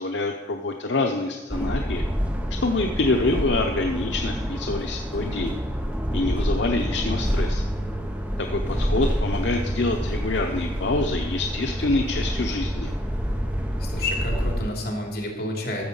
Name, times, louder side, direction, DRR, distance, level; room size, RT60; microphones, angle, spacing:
voice 1, 0.0-2.0 2.6-5.6 6.1-7.7 8.4-12.9, left 2 dB, 80° left, 3 dB, 0.7 m, -26 dB
sound 1, 1.5-14.7, equal, 10° right, 0.7 m, -27 dB
voice 2, 13.8-15.8, left 1 dB, 60° left, 0 dB, 2.8 m, -29 dB
13.5 x 7.2 x 5.5 m, 1.2 s
head